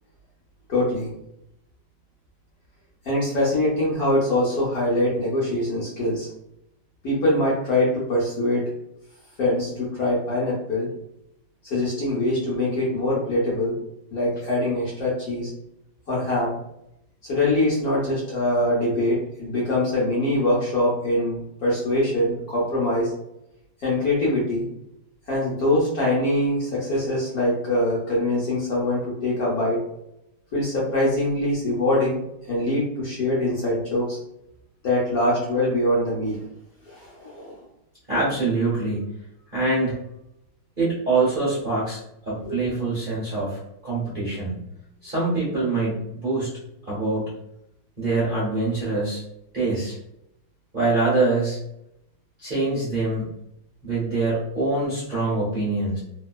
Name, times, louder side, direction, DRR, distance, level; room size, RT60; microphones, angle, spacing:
voice 1, 0.7-1.1 3.0-6.3 7.0-8.6 9.4-10.9 11.6-13.8 14.1-15.5 16.1-16.5 17.2-23.1 23.8-24.7 25.3-29.8 30.5-34.2 34.8-36.4 36.8-37.6 42.4-42.6, left 1 dB, 55° left, -6 dB, 1.1 m, -23 dB
voice 2, 38.1-39.1 39.5-40.0 40.8-42.0 42.3-44.6 45.0-46.5 46.9-47.3 48.0-49.2 49.5-50.0 50.7-51.6 52.4-53.3 53.8-56.0, right 3 dB, 40° right, -9 dB, 0.7 m, -24 dB
3.2 x 2.8 x 2.3 m, 0.81 s
omnidirectional pair, 2.3 m